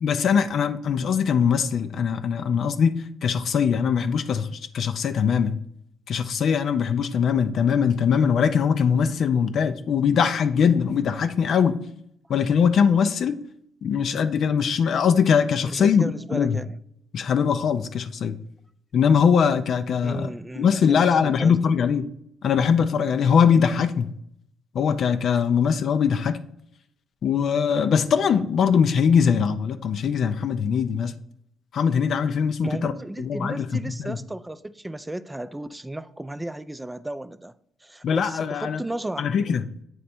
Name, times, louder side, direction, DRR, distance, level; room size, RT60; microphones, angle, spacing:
voice 1, 0.0-5.6 6.1-11.8 12.3-13.4 13.8-16.0 16.3-16.6 17.1-18.4 18.9-20.3 20.6-22.1 22.4-24.1 24.7-26.4 27.2-31.1 31.7-32.9 33.2-34.2 38.0-38.8 39.2-39.6, left 7 dB, 65° left, 0.4 m, -21 dB
voice 2, 15.6-16.8 20.0-21.6 32.6-37.5 37.8-39.6, right 1 dB, 15° right, 0.4 m, -34 dB
8.1 x 3.3 x 4.2 m
supercardioid pair, 60°, 0 cm